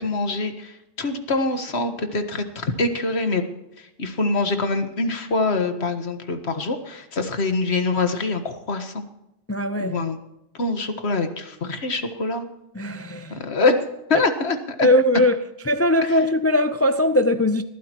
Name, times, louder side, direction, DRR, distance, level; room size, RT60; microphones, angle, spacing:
voice 1, 0.0-3.4 4.0-9.0 9.8-10.2 10.6-12.4 13.3-13.8 14.1-14.9 16.0-16.1, left 3 dB, 75° left, 1.7 m, -24 dB
voice 2, 9.5-10.0 12.7-13.4 14.1-14.2 14.8-15.4 15.6-17.6, left 1 dB, 20° left, 0.5 m, -20 dB
20.5 x 14.5 x 3.0 m
omnidirectional pair, 1.1 m